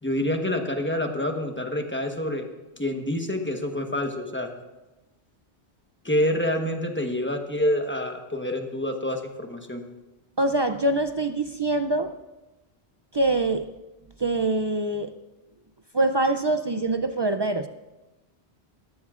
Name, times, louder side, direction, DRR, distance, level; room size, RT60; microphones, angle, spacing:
voice 1, 0.0-2.5 2.8-4.5 6.0-9.8, left 1 dB, 10° left, 3 dB, 1.1 m, -27 dB
voice 2, 10.4-12.1 13.1-13.7 14.2-15.1 15.9-17.7, right 2 dB, 45° right, 8 dB, 0.3 m, -24 dB
19.5 x 14.0 x 2.5 m, 1.1 s
omnidirectional pair, 1.1 m